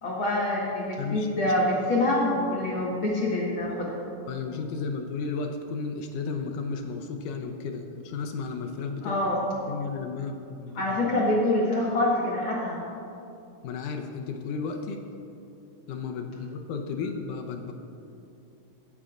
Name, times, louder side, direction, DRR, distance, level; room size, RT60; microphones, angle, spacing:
voice 1, 0.0-4.0 9.0-9.4 10.7-12.8, left 1 dB, 50° left, -5 dB, 1.7 m, -26 dB
voice 2, 1.0-1.3 4.3-9.2 9.7-10.8 13.6-15.0 15.9-17.7, left 4 dB, 75° left, 3 dB, 2.1 m, -33 dB
23.5 x 8.4 x 2.5 m, 2.7 s
omnidirectional pair, 3.9 m